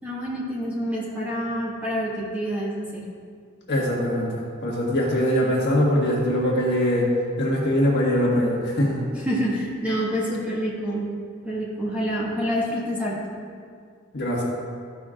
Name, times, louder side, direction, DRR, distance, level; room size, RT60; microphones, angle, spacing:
voice 1, 0.0-3.0 9.1-11.1 11.4-13.3, equal, 5° right, -7 dB, 1.6 m, -27 dB
voice 2, 3.7-7.1 7.4-9.0 14.1-14.4, equal, 50° left, -4 dB, 1.6 m, -22 dB
13.5 x 5.9 x 2.5 m, 2.2 s
head